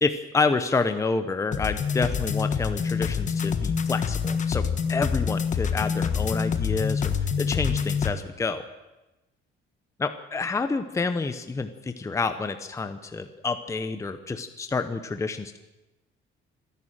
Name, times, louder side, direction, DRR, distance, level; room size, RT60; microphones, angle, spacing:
voice 1, 0.0-8.6 10.0-15.6, left 4 dB, 15° left, 9 dB, 0.8 m, -28 dB
sound 1, 1.5-8.1, left 6 dB, 35° left, 1.3 m, -26 dB
27.0 x 11.0 x 9.0 m, 1.0 s
cardioid pair, 165°, 21 cm